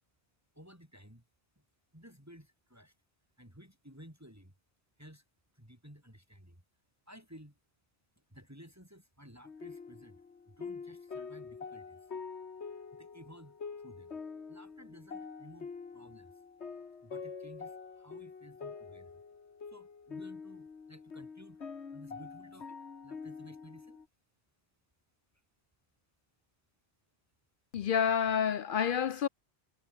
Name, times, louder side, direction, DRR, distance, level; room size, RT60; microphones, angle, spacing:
voice 1, 0.5-1.2 1.6-1.7 1.9-2.9 3.4-4.5 5.0-5.2 5.5-6.6 7.1-7.6 8.3-12.1 12.9-14.1 14.5-16.4 17.0-19.2 19.7-21.6 21.9-24.0, equal, 15° right, 5.0 m, -55 dB
sound 1, 9.4-24.1, left 5 dB, 80° left, 2.0 m, -45 dB
voice 2, 27.7-29.3, left 8 dB, 60° left, 0.6 m, -29 dB
omnidirectional pair, 1.1 m